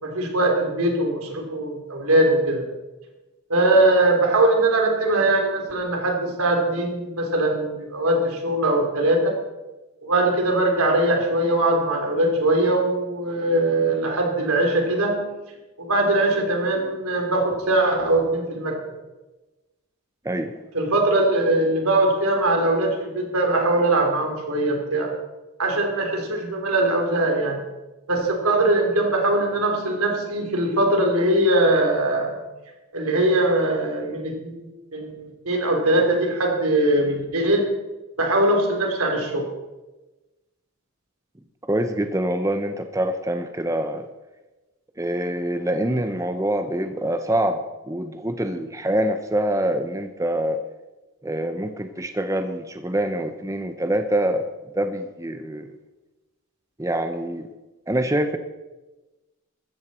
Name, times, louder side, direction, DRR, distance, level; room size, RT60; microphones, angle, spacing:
voice 1, 0.0-2.7 3.5-9.4 10.0-15.2 15.8-18.8 20.7-25.1 25.6-27.6 28.1-32.3 32.9-37.6 38.2-39.4, right 1 dB, 85° right, 2 dB, 3.5 m, -21 dB
voice 2, 20.2-20.6 41.7-44.1 45.0-50.6 51.2-54.4 54.8-55.8 56.8-57.5 57.9-58.4, right 1 dB, 15° right, 8 dB, 0.7 m, -25 dB
14.5 x 14.0 x 4.3 m, 1.1 s
head